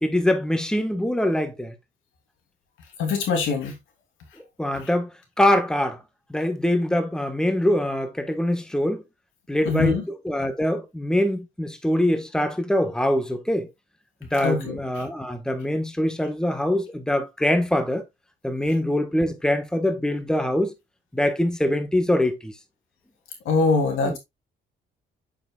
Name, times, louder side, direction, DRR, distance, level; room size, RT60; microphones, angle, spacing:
voice 1, 0.0-1.7 4.6-5.1 5.4-6.0 6.3-9.0 9.5-13.7 14.3-18.0 18.4-20.7 21.1-22.5 24.0-24.2, left 1 dB, 5° left, 1.4 m, -23 dB
voice 2, 3.0-3.8 9.6-10.0 14.4-14.8 23.4-24.2, left 4 dB, 90° left, 3.0 m, -22 dB
7.9 x 6.7 x 2.4 m
cardioid pair, 90°, 20 cm